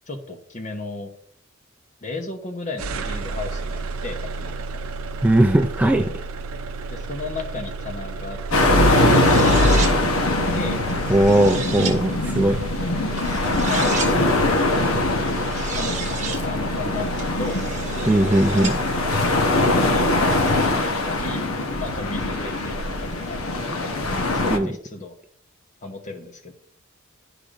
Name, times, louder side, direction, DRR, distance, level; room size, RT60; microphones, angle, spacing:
voice 1, 0.1-1.1 2.0-4.9 6.9-10.8 12.8-12.9 13.5-15.0 15.7-17.6 19.7-21.4 21.7-23.5 24.3-25.2 25.8-26.5, left 2 dB, 35° left, 5 dB, 0.9 m, -35 dB
sound 1, 2.8-21.1, right 2 dB, 80° right, 0.5 m, -29 dB
voice 2, 5.2-6.1 11.1-12.6 18.1-18.7 24.4-24.7, right 1 dB, 5° right, 4 dB, 0.3 m, -18 dB
sound 2, 8.5-24.6, left 2 dB, 75° left, 1.0 m, -22 dB
sound 3, 9.0-9.9 10.9-11.9 13.2-14.1 15.3-16.4 17.2-18.7, right 6 dB, 35° right, 1.1 m, -33 dB
12.0 x 4.9 x 2.5 m, 0.63 s
head